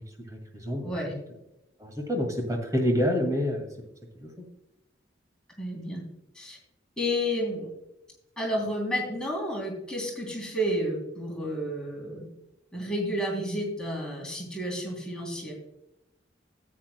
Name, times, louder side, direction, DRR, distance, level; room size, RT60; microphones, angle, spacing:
voice 1, 0.3-1.2 1.8-3.7 4.2-4.3, equal, 20° right, 3 dB, 2.0 m, -28 dB
voice 2, 0.8-1.1 5.6-6.0 6.3-6.6 7.0-7.7 8.4-12.3 12.7-15.5, equal, 5° left, -3 dB, 3.0 m, -31 dB
13.0 x 8.8 x 2.2 m, 0.86 s
head